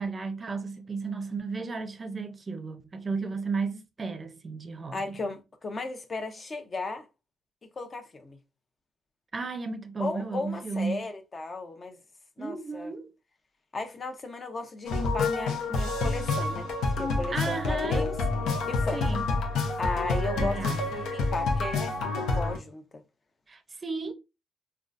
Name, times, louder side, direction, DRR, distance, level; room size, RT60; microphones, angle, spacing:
voice 1, 0.0-5.2 9.3-11.1 12.4-13.1 17.3-18.1 18.9-19.3 20.4-20.8 23.5-24.1, right 4 dB, 35° right, 0.5 m, -34 dB
voice 2, 4.9-7.1 7.8-8.4 10.0-12.0 12.4-12.9 13.7-16.7 17.0-18.1 18.7-19.0 19.8-23.0, left 3 dB, 35° left, 0.7 m, -35 dB
sound 1, 14.9-22.6, left 3 dB, 80° left, 0.7 m, -28 dB
3.8 x 2.3 x 2.5 m
cardioid pair, 90°, 0 cm